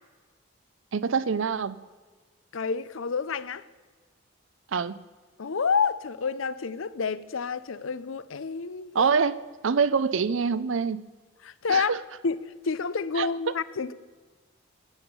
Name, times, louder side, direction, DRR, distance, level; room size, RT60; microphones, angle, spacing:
voice 1, 0.9-1.8 4.7-5.0 8.9-11.0 11.7-12.0 13.2-13.5, right 5 dB, 70° right, 0.5 m, -25 dB
voice 2, 2.5-3.6 5.4-9.1 11.4-12.0 12.2-13.9, left 5 dB, 75° left, 0.6 m, -29 dB
15.0 x 8.8 x 6.8 m
head